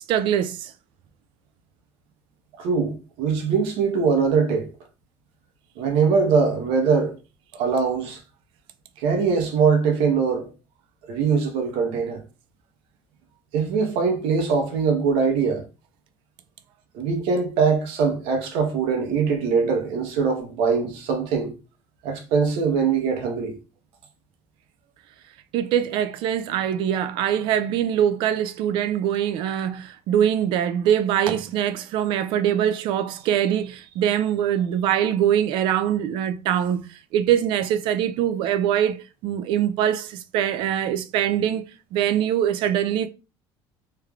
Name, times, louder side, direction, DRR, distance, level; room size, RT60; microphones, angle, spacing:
voice 1, 0.1-0.7 25.5-41.6 41.9-43.1, right 10 dB, 60° right, 0.3 m, -23 dB
voice 2, 2.6-4.7 5.8-7.1 7.6-8.2 9.0-10.5 11.1-12.2 13.5-15.6 16.9-21.5 22.0-23.5, right 5 dB, 75° right, 0.9 m, -22 dB
3.3 x 3.3 x 2.3 m
cardioid pair, 155°, 9 cm